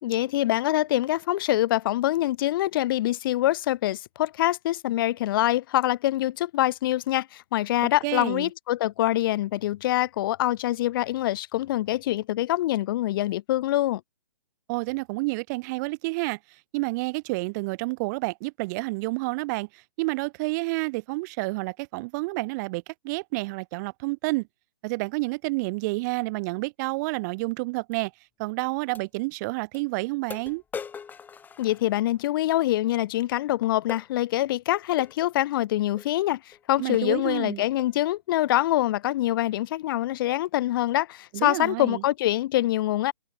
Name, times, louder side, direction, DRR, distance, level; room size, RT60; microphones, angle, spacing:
voice 1, 0.0-14.0 31.6-43.1, left 15 dB, 45° left, 2.9 m, -25 dB
voice 2, 8.0-8.5 14.7-16.4 16.7-24.5 24.8-28.1 28.4-30.6 36.8-37.6 41.3-42.0, right 25 dB, 35° right, 7.1 m, -29 dB
sound 1, 27.9-28.0 28.9-29.1 29.7-29.8 30.3-32.3 33.9-34.1 35.0-35.2 36.0-36.1 36.5-36.6 36.9-37.2 37.8-38.0, left 6 dB, 10° left, 4.8 m, -40 dB
hypercardioid pair, 140°, 16 cm